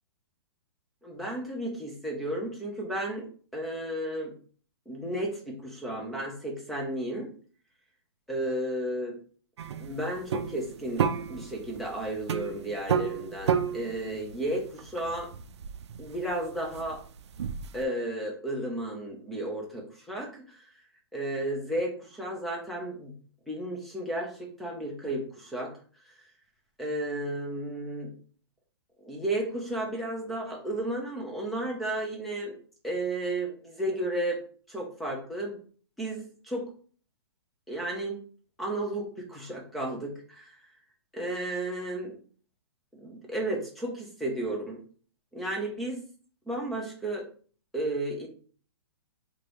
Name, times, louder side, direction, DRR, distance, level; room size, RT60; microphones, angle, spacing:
voice 1, 1.0-3.3 3.5-4.3 4.9-7.3 8.3-9.1 9.8-15.3 16.0-17.0 17.7-20.7 21.1-23.1 23.5-25.7 26.8-28.1 29.0-32.5 32.8-34.4 34.7-35.6 36.0-36.7 37.7-38.2 38.6-40.5 41.1-42.1 42.9-44.8 45.3-46.0 46.5-47.3 47.7-48.3, right 1 dB, ahead, -2 dB, 0.3 m, -33 dB
sound 1, 9.6-17.8, right 7 dB, 85° right, 0.4 m, -32 dB
4.7 x 2.6 x 3.0 m, 0.44 s
hypercardioid pair, 175°, 14 cm